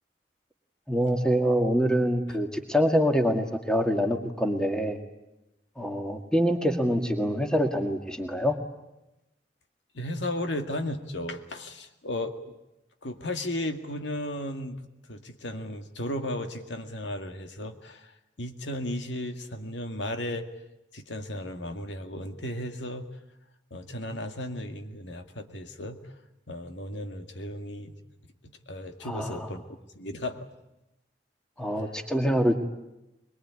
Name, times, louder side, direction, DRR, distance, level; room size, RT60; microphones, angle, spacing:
voice 1, 0.9-5.0 5.8-8.6 29.1-29.5 31.6-32.6, equal, 5° left, 4 dB, 2.0 m, -25 dB
voice 2, 9.9-12.5 13.0-20.5 20.9-23.1 23.7-26.1 26.5-27.9 28.4-29.6 29.9-30.5 31.7-32.1, left 1 dB, 85° left, 6 dB, 2.1 m, -35 dB
23.0 x 22.5 x 9.7 m, 0.92 s
head